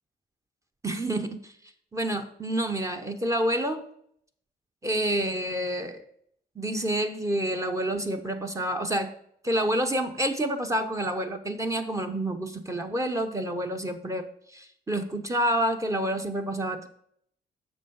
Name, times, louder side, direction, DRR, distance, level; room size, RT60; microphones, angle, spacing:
voice 1, 0.8-1.5 1.9-3.8 4.8-6.0 6.6-9.1 9.4-16.9, right 1 dB, 20° right, 6 dB, 0.9 m, -28 dB
8.2 x 6.4 x 5.4 m, 0.67 s
cardioid pair, 90°, 17 cm